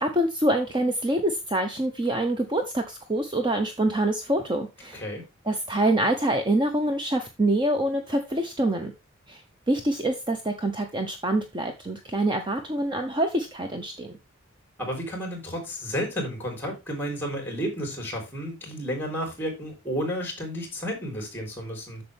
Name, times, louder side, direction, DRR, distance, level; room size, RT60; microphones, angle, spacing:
voice 1, 0.0-5.0 5.4-8.9 9.3-9.4 9.7-14.2, right 1 dB, 25° right, 0.8 m, -25 dB
voice 2, 4.9-5.2 14.8-22.0, equal, 10° left, 3.9 m, -32 dB
8.4 x 6.8 x 3.4 m
head